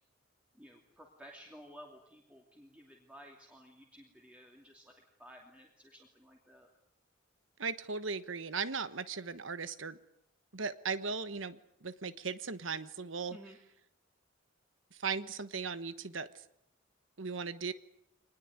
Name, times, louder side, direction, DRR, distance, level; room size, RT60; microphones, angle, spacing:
voice 1, 0.5-4.9 5.2-6.7 13.3-13.6, equal, 5° right, 0 dB, 2.7 m, -55 dB
voice 2, 7.6-10.0 10.5-13.4 14.9-16.3 17.2-17.7, right 5 dB, 70° right, 13 dB, 1.2 m, -37 dB
25.0 x 20.0 x 9.5 m, 0.78 s
head